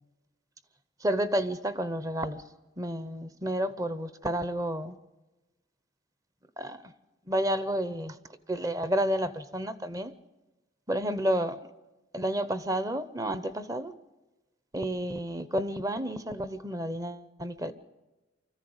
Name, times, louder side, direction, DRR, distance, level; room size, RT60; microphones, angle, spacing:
voice 1, 1.0-2.4 2.8-5.0 6.6-6.8 7.3-8.2 8.5-10.1 10.9-11.6 12.1-13.9 14.7-17.7, right 1 dB, 20° right, 0.9 m, -30 dB
25.0 x 14.5 x 8.0 m
head